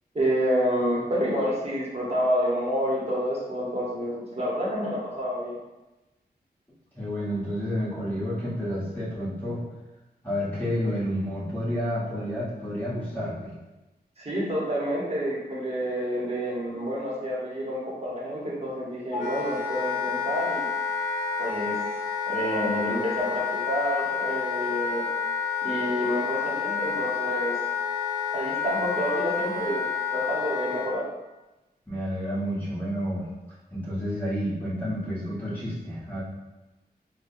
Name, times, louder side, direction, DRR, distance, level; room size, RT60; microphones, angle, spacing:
voice 1, 0.1-5.6 14.2-20.7 21.4-21.8 22.3-25.0 25.6-27.6 28.3-31.0, equal, 40° right, -5 dB, 1.0 m, -28 dB
voice 2, 6.9-9.6 10.2-13.5 31.9-33.3 33.7-36.2, equal, 10° left, -11 dB, 1.4 m, -30 dB
Wind instrument woodwind instrument, 19.1-30.9, left 6 dB, 45° left, 0.8 m, -29 dB
4.8 x 2.3 x 2.6 m, 1.1 s
wide cardioid pair, 130°, 17 cm